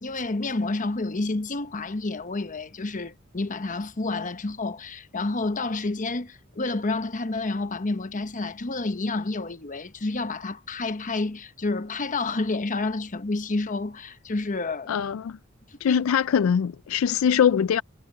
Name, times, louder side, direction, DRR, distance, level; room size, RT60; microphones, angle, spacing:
voice 1, 0.0-15.0 15.7-16.0, left 3 dB, 40° left, 1.0 m, -29 dB
voice 2, 14.9-15.4 15.8-17.8, left 8 dB, 80° left, 0.4 m, -22 dB
head